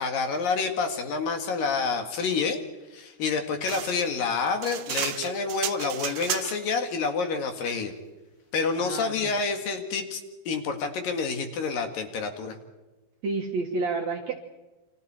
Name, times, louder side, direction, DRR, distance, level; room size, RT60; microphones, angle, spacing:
voice 1, 0.0-2.6 2.9-7.9 8.5-10.2 10.5-12.6, left 4 dB, 60° left, 5 dB, 3.4 m, -28 dB
sound 1, 3.6-6.8, right 12 dB, 75° right, 2.7 m, -33 dB
voice 2, 8.8-9.3 13.2-14.4, right 3 dB, 55° right, 3 dB, 2.2 m, -30 dB
29.5 x 26.5 x 4.4 m, 1.1 s
omnidirectional pair, 4.8 m